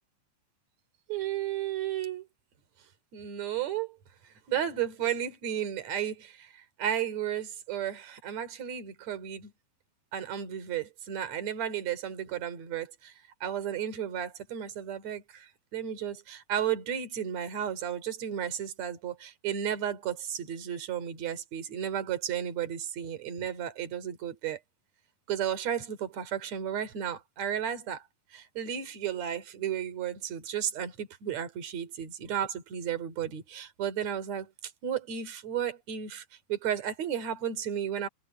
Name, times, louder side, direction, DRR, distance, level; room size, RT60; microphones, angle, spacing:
voice 1, 1.1-2.3 3.1-4.0 4.5-9.5 10.1-13.1 13.4-24.6 25.3-28.0 28.3-38.1, right 9 dB, 40° right, 3.7 m, -33 dB
omnidirectional pair, 5.4 m